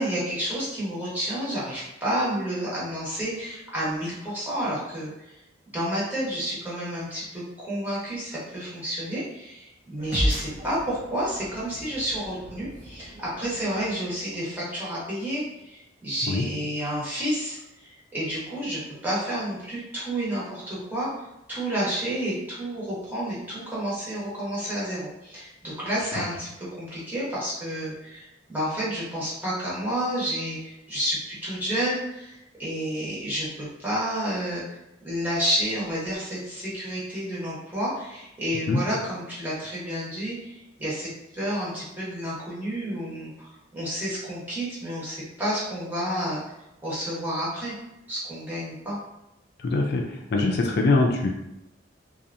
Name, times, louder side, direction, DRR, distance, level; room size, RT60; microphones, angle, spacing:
voice 1, 0.0-5.4 5.7-34.6 35.0-46.4 46.8-47.7 48.1-49.0, equal, 10° right, -9 dB, 1.0 m, -30 dB
sound 1, 10.0-14.6, equal, 45° right, 0.6 m, -34 dB
voice 2, 49.6-50.0 50.3-51.3, left 3 dB, 60° left, 1 dB, 0.4 m, -22 dB
2.7 x 2.3 x 2.5 m, 0.92 s
head